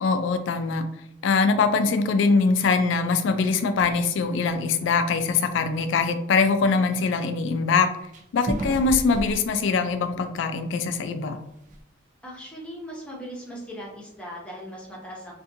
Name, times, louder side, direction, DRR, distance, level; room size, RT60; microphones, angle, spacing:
voice 1, 0.0-0.9 1.2-7.9 8.3-11.4, left 4 dB, 65° left, 8 dB, 0.3 m, -22 dB
sound 1, 3.8-4.0 4.4-4.8 5.2-5.3 5.7-5.8 8.1-10.6 10.9-11.0 11.4-11.8, right 1 dB, 40° right, 0.3 m, -33 dB
voice 2, 12.2-15.4, equal, 5° left, -4 dB, 0.7 m, -39 dB
2.6 x 2.5 x 2.6 m, 0.78 s
head